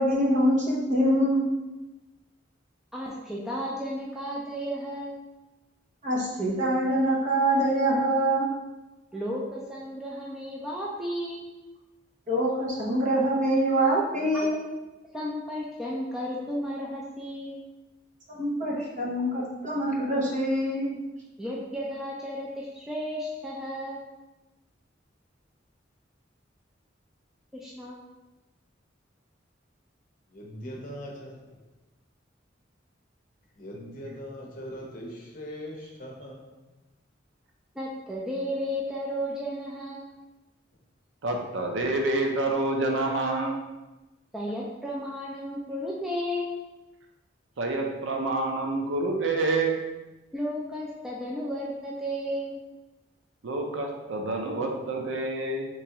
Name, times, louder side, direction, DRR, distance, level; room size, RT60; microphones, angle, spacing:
voice 1, 0.0-1.4 6.0-8.5 12.3-14.6 18.3-20.9, right 1 dB, 40° right, -4 dB, 0.9 m, -24 dB
voice 2, 2.9-5.1 9.1-11.4 14.3-14.5 15.1-17.6 21.4-24.0 27.5-28.0 37.8-40.1 44.3-46.6 50.3-52.6, equal, ahead, -4 dB, 0.3 m, -33 dB
voice 3, 30.3-31.4 33.6-35.1 35.3-35.7 36.0-36.4 41.6-41.7, equal, 45° left, -1 dB, 0.7 m, -40 dB
voice 4, 41.2-43.6 47.6-49.8 53.4-55.7, right 2 dB, 85° right, 2 dB, 0.6 m, -27 dB
3.4 x 3.1 x 2.9 m, 1.1 s
head